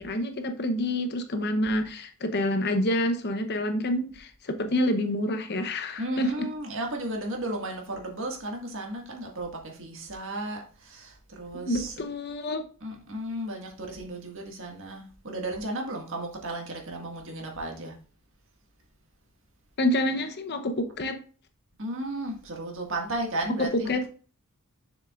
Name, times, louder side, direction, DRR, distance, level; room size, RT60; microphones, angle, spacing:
voice 1, 0.0-6.5 11.7-12.6 19.8-21.2 23.7-24.1, left 1 dB, 50° left, 0.8 m, -27 dB
voice 2, 6.0-12.0 12.8-17.9 21.8-24.0, right 1 dB, 60° right, 1.8 m, -34 dB
6.9 x 6.8 x 2.4 m
head